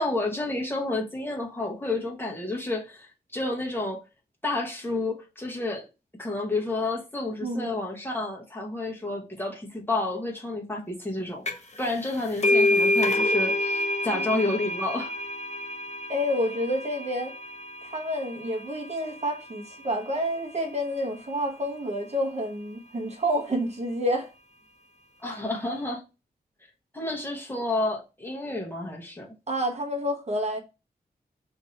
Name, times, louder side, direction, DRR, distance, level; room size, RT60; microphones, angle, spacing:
voice 1, 0.0-4.0 4.4-5.8 6.2-11.4 11.8-15.1 25.2-26.0 26.9-29.3, left 2 dB, 15° left, 0.9 m, -30 dB
voice 2, 7.4-7.7 14.1-14.4 16.1-17.3 17.8-24.3 29.5-30.6, equal, 40° right, 0.9 m, -29 dB
sound 1, 11.5-11.8 12.0-19.3, left 2 dB, 45° left, 0.7 m, -27 dB
2.7 x 2.6 x 4.3 m
wide cardioid pair, 95°, 16 cm